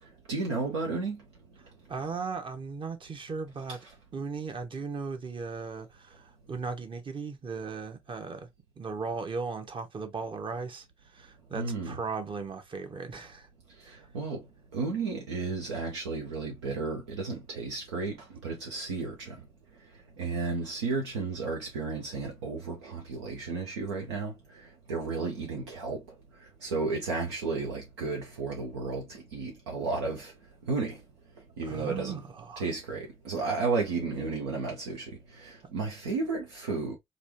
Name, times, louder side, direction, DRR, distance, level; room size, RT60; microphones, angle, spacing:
voice 1, 0.3-1.2 3.7-3.8 11.5-12.0 13.9-14.4 14.7-19.4 20.2-26.0 26.6-30.3 30.7-31.0 31.6-32.2 32.6-37.0, right 4 dB, 85° right, 0.6 m, -33 dB
voice 2, 1.9-3.8 4.1-8.5 8.8-13.5 13.8-14.0 31.6-32.6, right 4 dB, 40° right, 0.9 m, -37 dB
3.2 x 2.5 x 2.6 m
hypercardioid pair, 45°, 14 cm